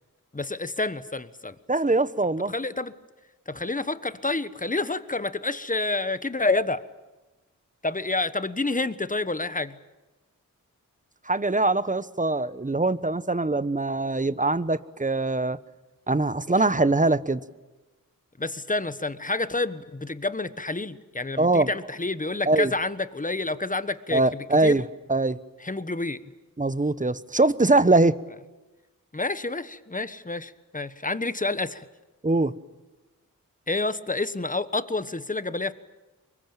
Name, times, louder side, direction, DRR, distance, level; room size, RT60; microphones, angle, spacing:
voice 1, 0.3-1.5 2.5-2.9 3.5-6.8 7.8-9.8 16.6-16.7 18.4-24.8 25.6-26.2 29.1-31.9 33.7-35.7, left 2 dB, 25° left, 13 dB, 1.3 m, -29 dB
voice 2, 1.7-2.5 11.3-15.6 16.1-17.4 21.4-21.7 22.5-22.7 24.1-25.4 26.6-28.2 32.2-32.5, right 2 dB, 20° right, 15 dB, 1.0 m, -22 dB
24.0 x 21.5 x 9.1 m, 1.1 s
cardioid pair, 45°, 35 cm